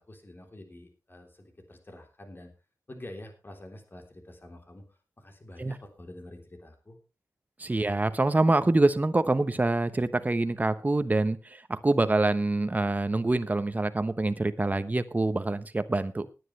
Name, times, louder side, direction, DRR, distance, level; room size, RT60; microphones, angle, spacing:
voice 1, 0.0-2.5 2.9-7.0, left 1 dB, 35° left, 4 dB, 3.5 m, -47 dB
voice 2, 7.6-16.3, right 2 dB, 25° right, 11 dB, 1.0 m, -25 dB
18.5 x 9.9 x 3.3 m, 0.30 s
wide cardioid pair, 90°, 7 cm